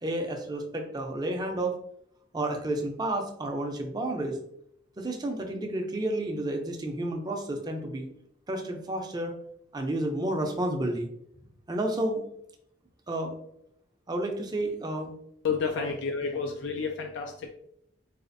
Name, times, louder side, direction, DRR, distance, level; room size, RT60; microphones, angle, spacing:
voice 1, 0.0-1.8 2.3-4.4 5.0-8.1 8.5-9.3 9.7-11.1 11.7-12.3 13.1-13.3 14.1-15.1 15.8-15.9, right 1 dB, 20° right, 3 dB, 0.4 m, -31 dB
voice 2, 15.4-17.5, left 5 dB, 80° left, 3 dB, 0.3 m, -30 dB
4.1 x 2.4 x 2.5 m, 0.72 s
head